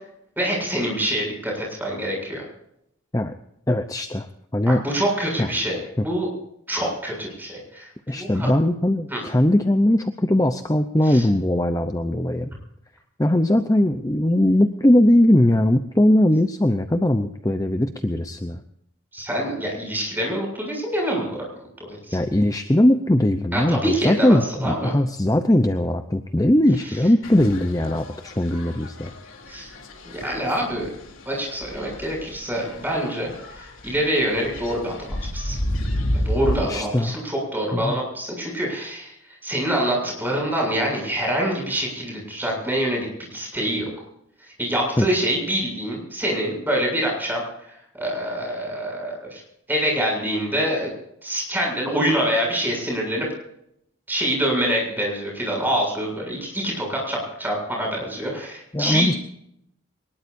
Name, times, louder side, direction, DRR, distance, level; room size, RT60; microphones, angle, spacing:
voice 1, 0.4-2.5 4.7-5.8 6.0-6.3 6.7-8.5 9.1-9.2 11.0-11.2 19.1-21.5 21.8-22.2 23.5-24.9 29.5-29.7 30.0-30.9 31.3-35.6 36.3-39.1 39.4-43.9 44.6-49.4 49.7-50.9 51.2-53.3 54.1-59.1, right 1 dB, 10° right, -1 dB, 7.4 m, -25 dB
voice 2, 3.7-4.3 4.5-4.8 5.4-5.5 6.0-6.1 8.1-12.5 13.2-18.6 22.1-29.1 36.6-37.2 37.7-38.0 45.0-45.1 58.7-59.2, left 1 dB, 15° left, 7 dB, 0.7 m, -20 dB
sound 1, 27.2-36.7, left 1 dB, 70° left, 3.2 m, -31 dB
23.0 x 20.5 x 2.7 m, 0.77 s
head